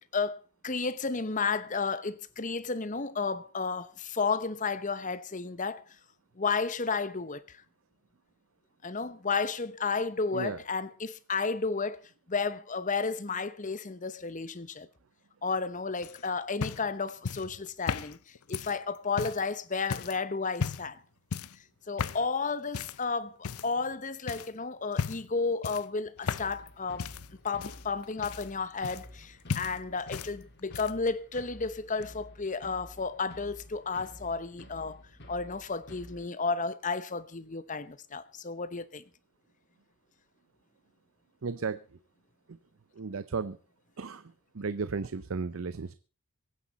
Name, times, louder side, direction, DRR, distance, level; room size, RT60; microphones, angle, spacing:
voice 1, 0.6-5.8 6.4-7.6 8.8-12.0 12.3-14.9 15.4-21.0 21.9-27.1 27.4-35.0 35.3-39.0, left 4 dB, 35° left, 0.9 m, -32 dB
voice 2, 10.3-10.6 41.4-41.8 42.5-42.6 42.9-43.6 44.0-45.9, right 4 dB, 65° right, 0.6 m, -34 dB
sound 1, 16.0-19.5 19.9-20.2 20.6-21.0 21.3-21.6 22.0-22.3 22.7-23.0 23.4-23.9 24.3-24.5 24.9-25.3 25.6-26.7 27.0-29.2 29.5-30.3 30.6-31.1 32.0-32.1, left 6 dB, 85° left, 0.6 m, -36 dB
sound 2, 26.2-36.3, left 1 dB, 50° left, 2.8 m, -50 dB
23.0 x 9.7 x 4.1 m
head